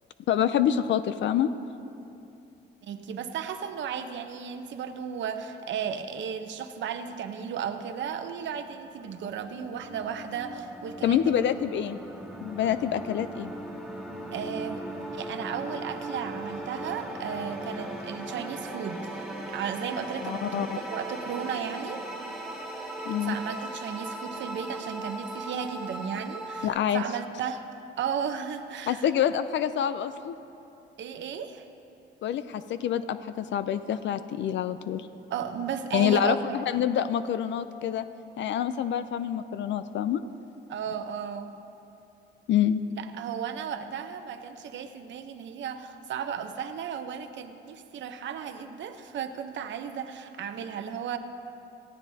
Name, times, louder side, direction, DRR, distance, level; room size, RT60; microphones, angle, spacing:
voice 1, 0.3-1.5 11.0-12.0 12.4-13.5 20.2-20.8 23.1-23.4 26.6-27.0 28.9-30.3 32.2-35.1 35.9-36.4 36.7-38.0 38.4-40.2 42.5-42.8, left 10 dB, 70° left, 12 dB, 0.5 m, -26 dB
voice 2, 2.8-11.3 14.3-14.8 15.1-20.6 20.9-22.0 23.2-27.6 28.0-29.1 31.0-31.7 35.3-36.6 40.7-41.5 43.0-51.2, right 7 dB, 70° right, 7 dB, 0.8 m, -34 dB
sound 1, 8.3-26.7, right 1 dB, ahead, 2.7 m, -38 dB
19.0 x 14.5 x 2.8 m, 2.8 s
cardioid pair, 90°, 20 cm